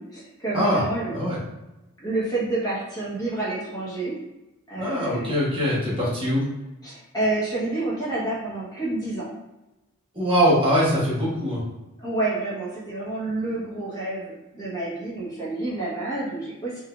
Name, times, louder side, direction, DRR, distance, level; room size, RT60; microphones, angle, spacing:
voice 1, 0.0-1.1 2.0-4.2 4.7-5.3 6.8-9.3 12.0-16.8, right 2 dB, 20° left, -7 dB, 1.1 m, -29 dB
voice 2, 4.7-6.5 10.1-11.6, equal, 25° right, -7 dB, 1.0 m, -22 dB
3.7 x 2.6 x 2.3 m, 1.0 s
head